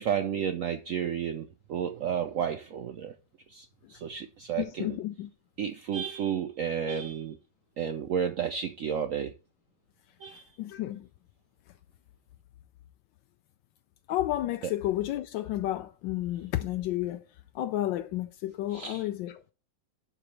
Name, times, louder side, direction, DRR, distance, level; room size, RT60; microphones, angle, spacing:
voice 1, 0.0-3.1 3.5-5.0 5.6-7.4 7.8-9.3 10.2-10.4 14.6-14.7 18.7-19.1, right 8 dB, 70° right, 0.8 m, -32 dB
voice 2, 4.6-5.3 10.6-11.1 14.1-17.3 17.5-19.4, left 14 dB, 85° left, 1.3 m, -31 dB
12.0 x 5.0 x 3.2 m
omnidirectional pair, 2.0 m